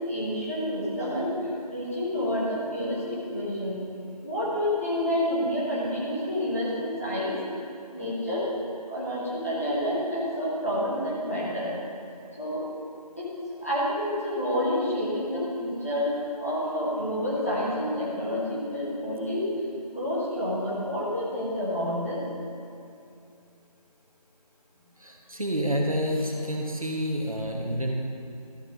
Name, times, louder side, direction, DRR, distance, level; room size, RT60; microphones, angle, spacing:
voice 1, 0.0-3.8 4.2-7.3 7.9-8.5 8.9-11.7 12.4-12.6 13.2-13.3 13.6-16.1 16.4-19.5 19.9-22.2, equal, 20° left, -8 dB, 1.4 m, -29 dB
voice 2, 25.0-27.9, equal, 60° right, 0 dB, 1.3 m, -28 dB
13.0 x 6.4 x 3.8 m, 2.6 s
figure-of-eight pair, 175°, 20 cm